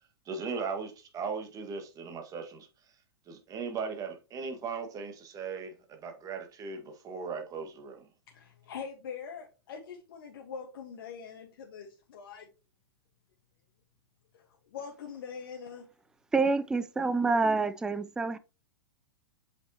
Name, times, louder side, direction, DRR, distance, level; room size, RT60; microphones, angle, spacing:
voice 1, 0.2-2.7 3.3-8.1, right 5 dB, 25° right, 1.7 m, -38 dB
voice 2, 8.3-12.5 14.3-14.4 14.7-15.8, left 6 dB, 60° left, 1.4 m, -43 dB
voice 3, 16.3-18.4, right 3 dB, 5° right, 0.3 m, -27 dB
7.7 x 5.2 x 2.9 m
hypercardioid pair, 110°, 13 cm